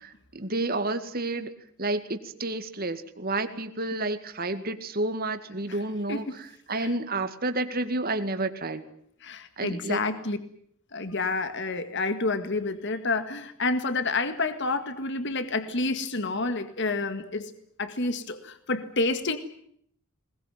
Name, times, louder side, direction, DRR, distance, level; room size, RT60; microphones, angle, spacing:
voice 1, 0.0-1.5 1.8-6.2 6.7-8.8 9.6-10.0, right 2 dB, 45° right, 9 dB, 2.2 m, -30 dB
voice 2, 6.1-6.4 6.7-6.9 9.2-10.4 10.9-17.5 17.8-19.4, left 3 dB, 55° left, 10 dB, 1.9 m, -29 dB
21.5 x 21.0 x 9.2 m, 0.66 s
head